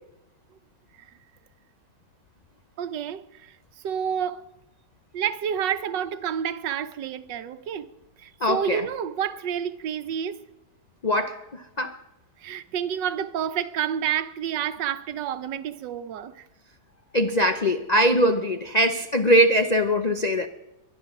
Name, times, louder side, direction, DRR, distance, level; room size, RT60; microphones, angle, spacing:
voice 1, 2.8-3.6 3.8-4.4 5.1-7.9 8.2-10.4 12.4-16.4, right 9 dB, 75° right, 1.5 m, -29 dB
voice 2, 8.4-8.9 11.0-12.0 17.1-20.5, equal, 80° left, 0.3 m, -22 dB
23.0 x 10.5 x 5.9 m
omnidirectional pair, 2.0 m